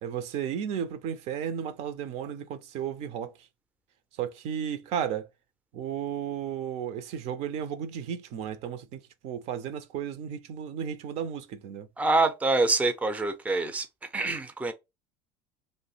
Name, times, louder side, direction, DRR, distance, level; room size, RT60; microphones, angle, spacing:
voice 1, 0.0-3.3 4.2-5.3 5.7-11.9, right 8 dB, 60° right, 0.5 m, -34 dB
voice 2, 12.0-13.9 14.1-14.7, right 3 dB, 10° right, 0.5 m, -25 dB
2.6 x 2.0 x 3.9 m
supercardioid pair, 90°, 13 cm